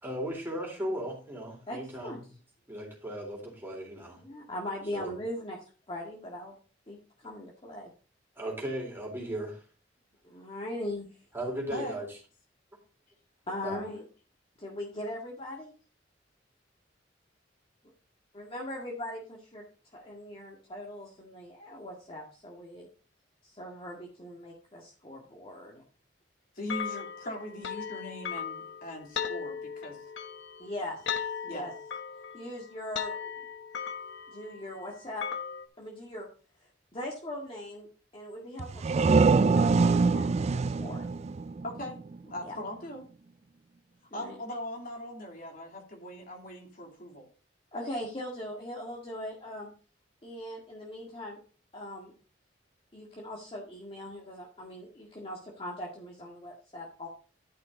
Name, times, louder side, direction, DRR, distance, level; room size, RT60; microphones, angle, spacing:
voice 1, 0.0-2.3 2.7-4.2 4.9-5.1 8.4-9.6 11.3-12.2 13.6-13.8, right 1 dB, 10° right, -1 dB, 3.6 m, -36 dB
voice 2, 4.2-6.6 6.9-7.9 10.2-11.1 13.5-14.1 14.6-15.7 18.3-19.6 19.9-22.9 23.4-25.8 30.6-31.7 32.3-33.5 34.3-35.3 35.8-36.3 36.6-37.9 38.1-41.1 42.4-42.6 44.1-44.4 47.7-49.7 50.2-51.4 51.7-52.1 52.9-57.1, left 1 dB, 30° left, -2 dB, 1.8 m, -40 dB
voice 3, 11.7-12.0 26.6-30.0 31.5-31.7 41.6-42.0 42.2-43.0 44.1-47.3, left 1 dB, 50° left, 0 dB, 2.8 m, -40 dB
sound 1, 26.7-35.7, left 7 dB, 75° left, 1.1 m, -38 dB
sound 2, 38.6-42.2, right 4 dB, 35° right, 0.4 m, -24 dB
12.0 x 5.9 x 3.9 m, 0.38 s
head